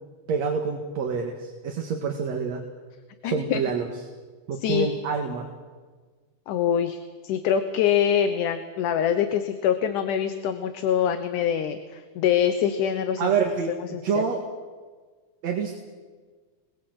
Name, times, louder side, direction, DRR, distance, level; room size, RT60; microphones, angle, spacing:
voice 1, 0.3-2.6 3.2-3.9 4.5-5.5 13.2-14.4 15.4-15.8, right 5 dB, 55° right, 3 dB, 2.9 m, -27 dB
voice 2, 3.2-3.6 4.6-4.9 6.5-7.0 7.2-13.3 13.8-14.2, left 9 dB, 70° left, 9 dB, 2.5 m, -24 dB
27.0 x 21.0 x 8.0 m, 1.4 s
omnidirectional pair, 3.9 m